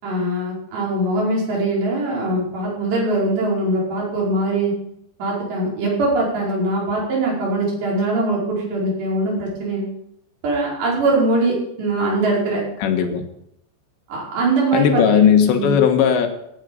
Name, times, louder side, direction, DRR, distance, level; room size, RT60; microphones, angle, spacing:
voice 1, 0.0-4.7 5.2-9.9 10.4-12.6 14.1-15.3 15.5-15.7, right 2 dB, 55° right, -4 dB, 7.1 m, -22 dB
voice 2, 12.8-13.2 14.7-16.3, left 8 dB, 70° left, 5 dB, 3.4 m, -16 dB
17.5 x 10.0 x 5.4 m, 0.77 s
omnidirectional pair, 5.9 m